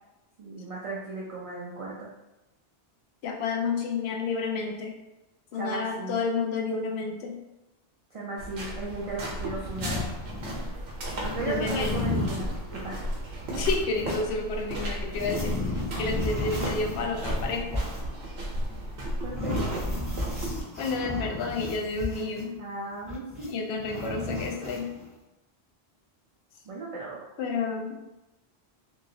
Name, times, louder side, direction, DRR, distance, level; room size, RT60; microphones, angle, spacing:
voice 1, 0.4-2.1 5.5-6.2 8.1-10.0 11.2-13.0 19.2-19.6 22.6-23.5 26.7-27.2, right 3 dB, 50° right, -5 dB, 0.4 m, -36 dB
voice 2, 3.2-4.9 5.5-7.4 11.1-11.2 11.5-12.1 13.5-17.8 20.5-22.6 23.5-24.9 27.4-28.1, left 4 dB, 80° left, 2 dB, 0.8 m, -30 dB
sound 1, 8.4-20.6, right 1 dB, 85° right, 1.0 m, -34 dB
sound 2, 9.4-10.7 11.0-14.2 14.9-22.6 23.0-25.0, left 2 dB, 15° left, 1.1 m, -34 dB
2.8 x 2.8 x 2.6 m, 1.0 s
omnidirectional pair, 1.1 m